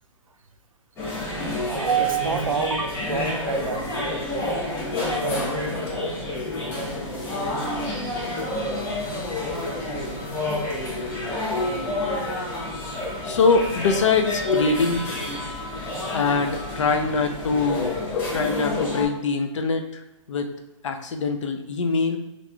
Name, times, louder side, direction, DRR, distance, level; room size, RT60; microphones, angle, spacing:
sound 1, 1.0-19.1, left 2 dB, 15° left, 0.6 m, -28 dB
voice 1, 1.7-3.9 4.2-4.6, right 7 dB, 85° right, 6 dB, 0.5 m, -27 dB
voice 2, 13.2-15.1 16.1-17.9 18.3-20.0 20.3-20.5 20.8-22.2, left 4 dB, 65° left, 5 dB, 0.5 m, -23 dB
3.4 x 2.4 x 2.2 m, 0.94 s
hypercardioid pair, 135°, 17 cm